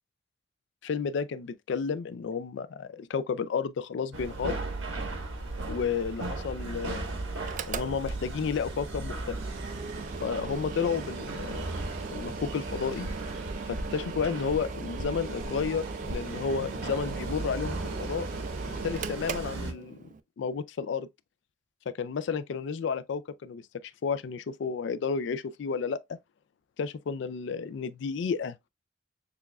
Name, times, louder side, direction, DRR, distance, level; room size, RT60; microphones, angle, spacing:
voice 1, 0.8-4.6 5.7-7.1 7.7-9.4 10.2-11.7 12.1-13.1 13.7-18.3 18.7-20.0 20.4-21.1 21.9-26.0 26.8-28.6, left 6 dB, 65° left, 0.3 m, -32 dB
sound 1, 4.1-19.7, right 2 dB, 85° right, 1.0 m, -37 dB
Mechanical fan, 7.4-20.2, right 5 dB, 40° right, 0.3 m, -40 dB
6.7 x 2.3 x 2.2 m
head